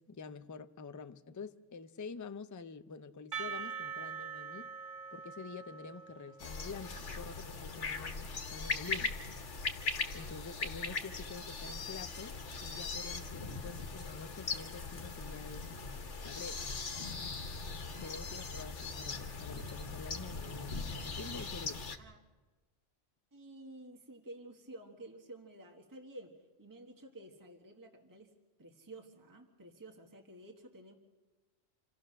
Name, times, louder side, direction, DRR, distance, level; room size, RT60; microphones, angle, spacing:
voice 1, 0.0-4.7 5.1-9.2 10.1-15.7 16.2-16.7 18.0-21.8, left 4 dB, 25° left, 0.4 m, -47 dB
Percussion, 3.3-7.2, right 6 dB, 45° right, 1.4 m, -44 dB
sound 1, 6.4-22.0, left 4 dB, 70° left, 1.6 m, -40 dB
voice 2, 23.3-26.3 26.6-28.3 28.6-30.9, right 1 dB, 15° right, 1.5 m, -51 dB
27.0 x 15.5 x 6.4 m
omnidirectional pair, 1.2 m